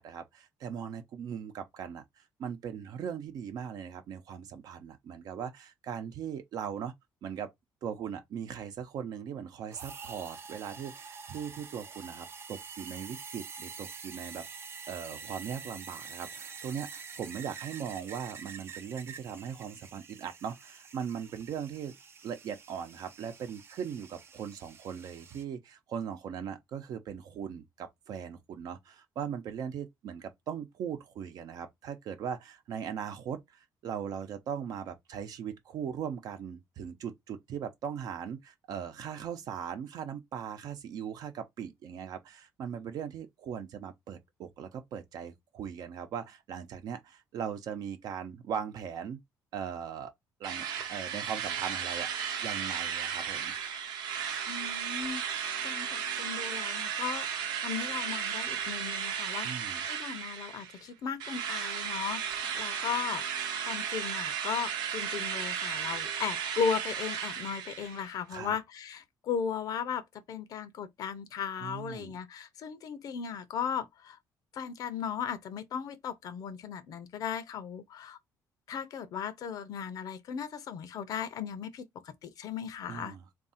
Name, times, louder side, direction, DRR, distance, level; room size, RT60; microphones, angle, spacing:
voice 1, 0.0-2.0 2.4-6.9 7.2-7.5 7.8-14.4 14.9-21.9 22.2-49.2 49.5-50.1 50.4-53.5 59.4-59.9 68.3-68.5 71.6-72.1 82.9-83.2, right 8 dB, 60° right, 0.8 m, -39 dB
sound 1, 9.7-25.4, right 5 dB, 35° right, 0.5 m, -47 dB
Drill, 50.4-60.8 61.2-68.1, right 7 dB, 90° right, 0.9 m, -35 dB
voice 2, 54.5-57.3 57.6-70.0 70.3-74.2 74.5-78.2 78.7-83.2, left 7 dB, 60° left, 0.6 m, -36 dB
3.7 x 2.6 x 4.1 m
cardioid pair, 150°, 7 cm